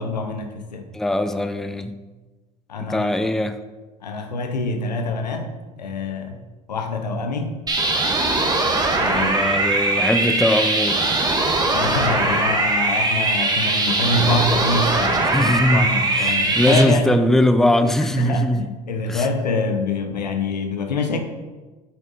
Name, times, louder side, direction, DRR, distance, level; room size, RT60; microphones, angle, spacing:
voice 1, 0.0-0.9 2.7-3.1 4.0-5.5 5.8-6.4 6.7-7.6 9.0-9.3 11.7-17.2 18.0-21.2, left 3 dB, 85° left, 1.0 m, -25 dB
voice 2, 0.9-2.0 2.8-3.6 9.1-11.1 15.3-18.7 19.1-19.3, left 1 dB, ahead, 0.5 m, -21 dB
sound 1, 7.7-16.8, right 2 dB, 20° right, 1.7 m, -21 dB
8.4 x 6.7 x 4.0 m
figure-of-eight pair, 70°, 21 cm